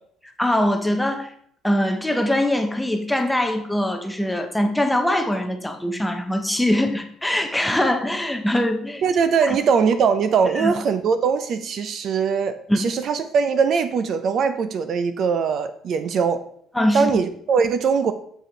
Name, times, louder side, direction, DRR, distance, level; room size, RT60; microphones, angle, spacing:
voice 1, 0.4-1.3 1.6-9.0 9.4-9.6 10.6-10.7 12.7-12.8 16.7-17.1, left 1 dB, 5° left, 6 dB, 0.6 m, -22 dB
voice 2, 9.0-16.4 16.9-18.1, right 6 dB, 45° right, 11 dB, 0.5 m, -21 dB
6.8 x 4.6 x 3.8 m, 0.64 s
cardioid pair, 155°, 0 cm